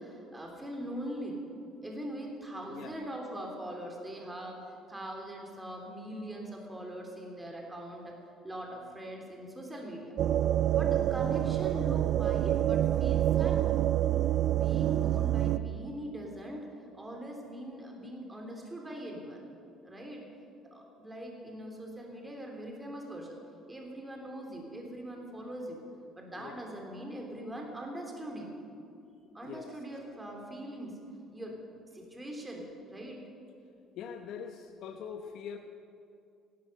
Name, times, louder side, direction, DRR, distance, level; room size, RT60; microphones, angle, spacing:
voice 1, 0.0-1.4 1.8-8.2 8.4-10.1 10.7-13.7 14.5-16.7 16.9-19.4 19.8-20.2 20.7-23.4 23.7-25.8 26.1-28.6 29.3-31.0 31.3-31.6 31.9-33.2, right 1 dB, 15° right, 0 dB, 3.1 m, -41 dB
sound 1, 10.2-15.6, right 12 dB, 65° right, 0.4 m, -27 dB
voice 2, 29.2-29.7 34.0-35.6, left 7 dB, 70° left, 5 dB, 1.0 m, -43 dB
16.0 x 12.5 x 6.6 m, 2.5 s
supercardioid pair, 85°, 0 cm